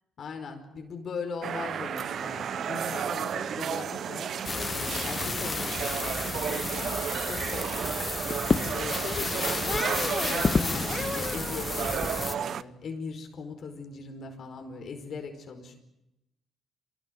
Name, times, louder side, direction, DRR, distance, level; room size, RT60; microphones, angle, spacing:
voice 1, 0.2-8.4 8.7-15.8, left 5 dB, 60° left, 5 dB, 4.9 m, -40 dB
sound 1, 1.4-12.6, right 8 dB, 60° right, 0.9 m, -33 dB
sound 2, 4.4-12.3, left 4 dB, 35° left, 0.9 m, -31 dB
25.0 x 20.5 x 7.8 m, 0.88 s
supercardioid pair, 65°, 0 cm